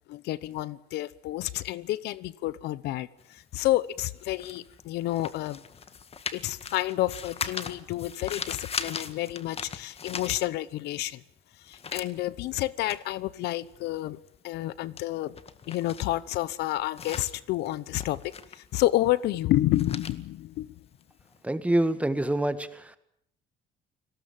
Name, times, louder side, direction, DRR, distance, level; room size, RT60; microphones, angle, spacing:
voice 1, 0.1-5.6 6.3-11.2 11.6-14.2 14.4-15.3 15.7-20.7, left 15 dB, 80° left, 19 dB, 0.9 m, -29 dB
sound 1, 3.2-11.0 11.3-21.4, left 6 dB, 35° left, 1.8 m, -40 dB
voice 2, 21.4-23.0, right 1 dB, 10° right, 11 dB, 1.8 m, -26 dB
30.0 x 19.5 x 7.6 m, 0.74 s
cardioid pair, 110°, 17 cm